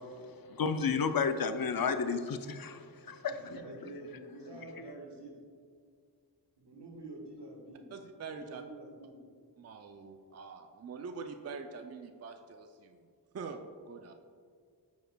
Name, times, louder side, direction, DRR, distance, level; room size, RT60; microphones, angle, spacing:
voice 1, 0.0-3.3, left 5 dB, 55° left, 0.5 m, -32 dB
voice 2, 3.2-5.4 6.6-7.8 8.3-9.2, right 2 dB, 75° right, 1.3 m, -48 dB
voice 3, 7.9-8.6 9.6-13.1 13.3-14.1, right 5 dB, 40° right, 0.4 m, -44 dB
9.0 x 5.2 x 2.2 m
wide cardioid pair, 50°, 42 cm